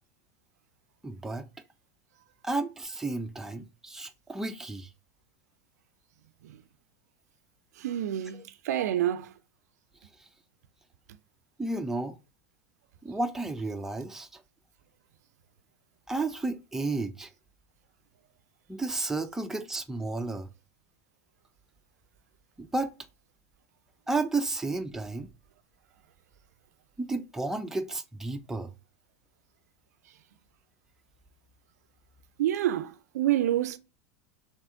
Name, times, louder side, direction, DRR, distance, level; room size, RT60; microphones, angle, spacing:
voice 1, 1.0-1.5 2.4-4.9 8.3-8.4 11.6-12.2 13.0-14.3 16.1-17.3 18.7-20.5 22.6-22.9 24.1-25.3 27.0-28.7, right 2 dB, 5° right, 0.5 m, -32 dB
voice 2, 7.8-9.3 32.4-33.8, right 12 dB, 80° right, 0.4 m, -28 dB
3.5 x 2.9 x 4.4 m
hypercardioid pair, 110°, 9 cm